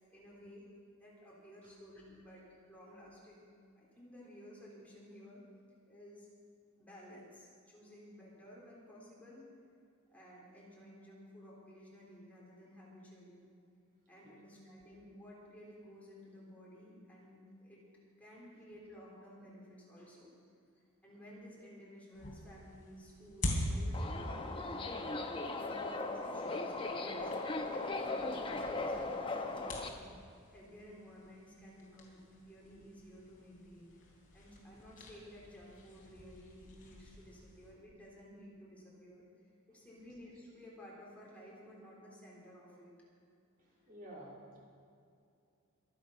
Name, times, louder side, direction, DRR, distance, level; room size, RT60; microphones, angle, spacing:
voice 1, 0.1-0.6 1.0-3.5 3.8-5.4 5.9-6.3 6.8-9.5 10.1-13.4 14.1-17.8 18.2-20.3 21.0-25.0 25.4-30.0 30.5-33.9 34.3-39.2 39.7-42.9, equal, 5° left, -6 dB, 3.7 m, -55 dB
sound 1, 22.1-37.7, left 1 dB, 40° left, 3.5 m, -45 dB
Subway metro underground, 23.9-29.9, left 2 dB, 25° left, 1.0 m, -38 dB
voice 2, 39.7-40.2 43.6-44.6, right 1 dB, 40° right, -4 dB, 3.4 m, -54 dB
24.0 x 8.8 x 5.6 m, 2.5 s
head